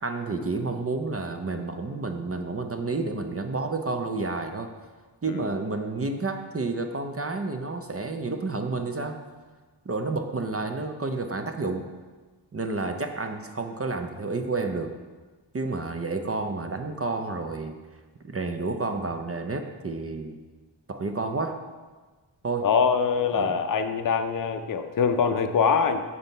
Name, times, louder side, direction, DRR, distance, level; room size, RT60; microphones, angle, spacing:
voice 1, 0.0-4.7 5.2-9.2 9.9-11.8 12.5-14.9 15.5-17.7 18.2-20.4 20.9-21.6 22.4-22.7 23.3-23.6, right 3 dB, 30° right, 5 dB, 0.5 m, -30 dB
voice 2, 22.6-26.0, left 6 dB, 45° left, 8 dB, 0.6 m, -24 dB
7.5 x 4.1 x 5.4 m, 1.4 s
wide cardioid pair, 80°, 47 cm